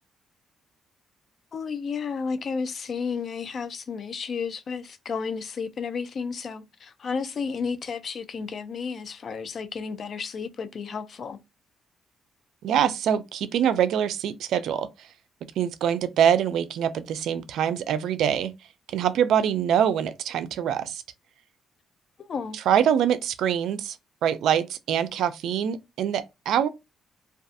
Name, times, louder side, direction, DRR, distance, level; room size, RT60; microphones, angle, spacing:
voice 1, 1.5-11.4 22.2-22.6, left 5 dB, 50° left, 0.4 m, -32 dB
voice 2, 12.6-15.1 15.6-18.5 18.9-21.0 22.5-24.0 24.2-26.7, right 9 dB, 80° right, 0.3 m, -24 dB
2.4 x 2.3 x 2.5 m
cardioid pair, 90°, 0 cm